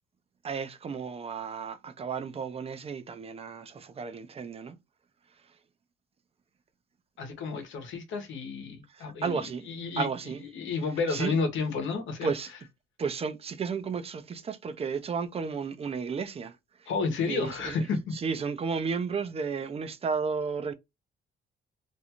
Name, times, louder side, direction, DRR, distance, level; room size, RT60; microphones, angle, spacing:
voice 1, 0.4-4.8 8.9-9.7 10.0-10.4 11.1-11.4 12.2-12.5 13.0-16.6 17.2-17.9 18.1-20.7, right 5 dB, 30° right, 0.5 m, -33 dB
voice 2, 7.2-10.1 10.4-12.3 16.9-18.1, left 4 dB, 75° left, 0.9 m, -31 dB
2.6 x 2.3 x 2.8 m
cardioid pair, 90°, 20 cm